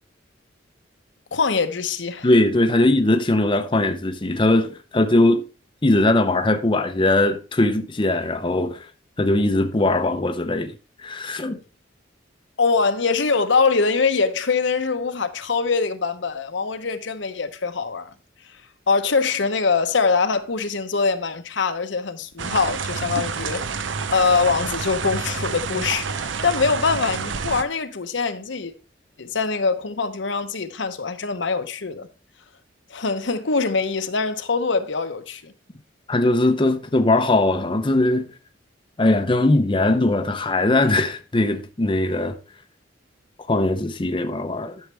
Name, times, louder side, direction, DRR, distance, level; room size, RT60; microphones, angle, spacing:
voice 1, 1.3-2.3 12.6-18.1 18.9-23.6 24.1-28.7 29.2-32.1 32.9-35.5, left 4 dB, 70° left, 0.9 m, -23 dB
voice 2, 2.2-5.4 5.8-8.9 9.2-10.7 11.0-11.6 36.1-38.3 39.0-42.4 43.5-44.8, left 2 dB, 25° left, 0.7 m, -20 dB
sound 1, 22.4-27.6, right 5 dB, 80° right, 0.7 m, -28 dB
11.0 x 6.5 x 3.4 m
head